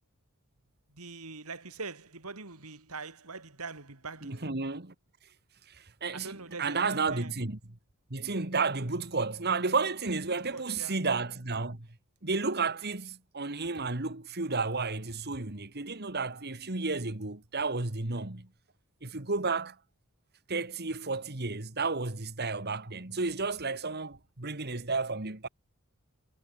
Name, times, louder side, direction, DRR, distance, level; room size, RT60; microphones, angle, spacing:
voice 1, 0.9-4.4 6.1-7.3 10.3-11.0, right 4 dB, 85° right, 3.3 m, -43 dB
voice 2, 4.2-4.9 5.7-7.6 8.1-11.9 12.2-18.5 19.0-19.8 20.5-25.5, right 4 dB, 45° right, 2.1 m, -32 dB
head